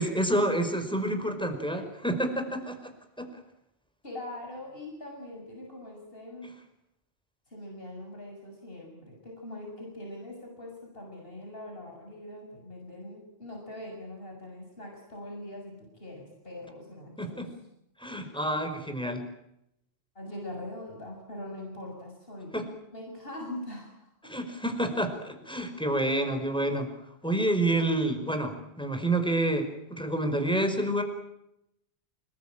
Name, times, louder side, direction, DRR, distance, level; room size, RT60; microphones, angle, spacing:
voice 1, 0.0-2.9 3.2-3.3 6.4-6.5 17.2-17.5 18.0-19.2 22.5-22.6 24.2-26.9 27.2-31.0, right 1 dB, 5° left, 6 dB, 5.1 m, -28 dB
voice 2, 4.0-6.5 7.5-17.5 18.1-18.4 20.2-22.6 22.9-24.3 25.9-26.0, left 1 dB, 60° left, 1 dB, 7.4 m, -42 dB
29.0 x 21.0 x 9.1 m, 0.81 s
omnidirectional pair, 1.1 m